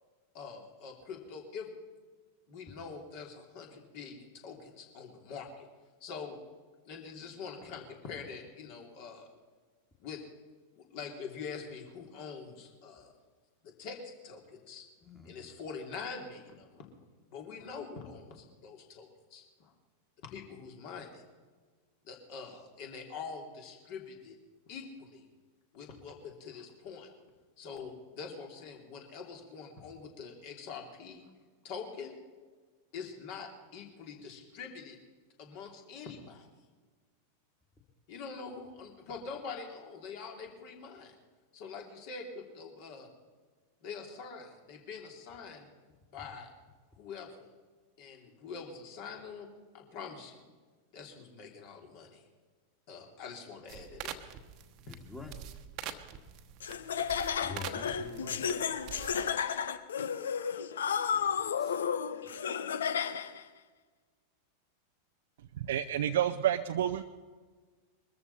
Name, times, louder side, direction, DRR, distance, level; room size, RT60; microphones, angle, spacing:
voice 1, 0.3-1.7 2.5-5.7 6.0-6.4 6.8-9.3 10.0-10.2 10.8-13.1 13.6-14.8 15.2-16.9 17.3-19.7 20.2-21.2 22.0-24.4 24.7-25.3 25.7-27.1 27.6-31.3 31.6-32.2 32.9-35.0 35.4-36.5 38.1-41.1 41.5-43.1 43.8-45.7 46.1-46.5 46.9-47.5 48.0-49.5 49.7-50.5 50.9-52.2 52.9-54.4, left 5 dB, 45° left, 2 dB, 3.1 m, -45 dB
voice 2, 15.0-15.3 54.9-55.4 57.4-58.4 61.1-61.3 61.6-61.8, left 4 dB, 10° left, 2 dB, 2.1 m, -45 dB
sound 1, 53.7-59.3, right 10 dB, 40° right, 1.1 m, -45 dB
Laughter, 56.6-63.4, left 7 dB, 65° left, 0.8 m, -33 dB
voice 3, 65.6-67.0, right 11 dB, 60° right, 8 dB, 0.5 m, -29 dB
22.5 x 13.5 x 4.2 m, 1.4 s
figure-of-eight pair, 90°, 0 cm